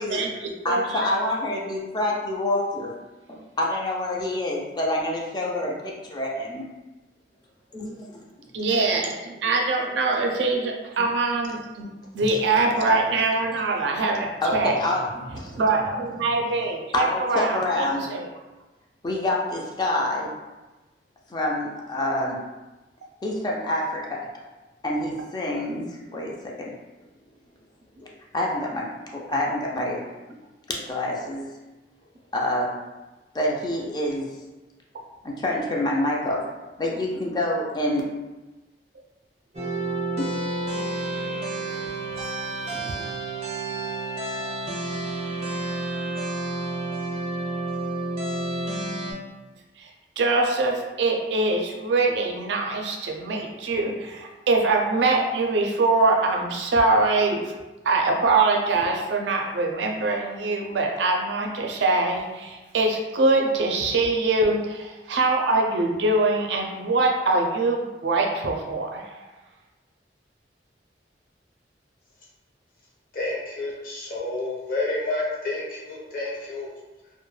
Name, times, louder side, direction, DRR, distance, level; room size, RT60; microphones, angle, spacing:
voice 1, 0.1-1.1 8.5-14.7 15.5-18.3 25.8-25.9 42.6-43.1 49.8-49.9 50.2-57.5 57.8-69.3, right 3 dB, 85° right, 1 dB, 0.4 m, -23 dB
voice 2, 0.6-2.9 3.3-6.6 7.7-8.2 11.0-11.1 12.2-12.3 13.5-13.6 14.4-15.6 16.9-18.1 19.0-20.3 21.3-22.4 23.2-24.2 24.8-25.9 26.1-26.7 28.0-28.1 28.3-28.8 29.1-30.0 30.7-31.5 32.3-32.7 33.3-34.3 35.2-36.4 36.8-38.0 40.2-40.3, left 1 dB, 25° left, -2 dB, 0.3 m, -27 dB
sound 1, 39.5-49.1, right 2 dB, 40° right, 0.5 m, -30 dB
voice 3, 73.1-76.7, left 2 dB, 55° left, -4 dB, 0.7 m, -29 dB
2.2 x 2.1 x 3.1 m, 1.1 s
head